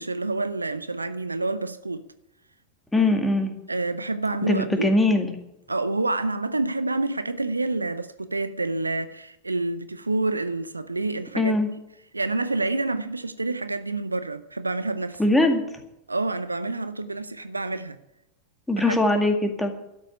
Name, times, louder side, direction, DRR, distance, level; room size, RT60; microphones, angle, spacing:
voice 1, 0.0-2.1 3.7-4.9 5.7-11.5 12.1-15.2 16.1-18.0 18.9-19.0, right 2 dB, 80° right, 0.7 m, -28 dB
voice 2, 2.9-3.5 4.4-5.3 11.4-11.7 15.2-15.6 18.7-19.7, left 2 dB, 5° left, 2.1 m, -21 dB
13.0 x 8.0 x 9.6 m
figure-of-eight pair, 90°, 0 cm